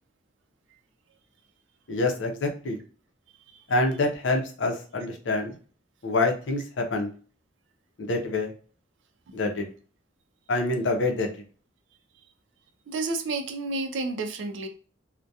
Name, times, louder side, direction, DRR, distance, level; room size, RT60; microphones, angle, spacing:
voice 1, 1.9-2.8 3.7-5.6 6.0-7.1 8.0-8.5 9.3-9.7 10.5-11.4, left 2 dB, 75° left, 3 dB, 0.6 m, -26 dB
voice 2, 12.9-14.7, right 3 dB, 75° right, 6 dB, 0.4 m, -30 dB
2.3 x 2.1 x 2.6 m, 0.40 s
head